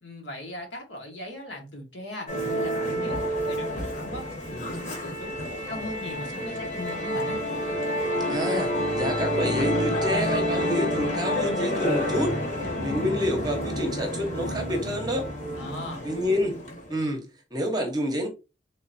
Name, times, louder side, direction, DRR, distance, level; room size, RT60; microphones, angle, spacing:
voice 1, 0.0-7.4 15.6-16.1, left 1 dB, 70° left, 1.4 m, -39 dB
Musical instrument, 2.3-16.9, equal, 40° left, 1.2 m, -29 dB
voice 2, 8.3-12.4 12.8-15.3 16.0-16.5 16.9-17.2 17.5-18.3, equal, 20° right, 0.9 m, -28 dB
3.8 x 3.2 x 2.7 m
head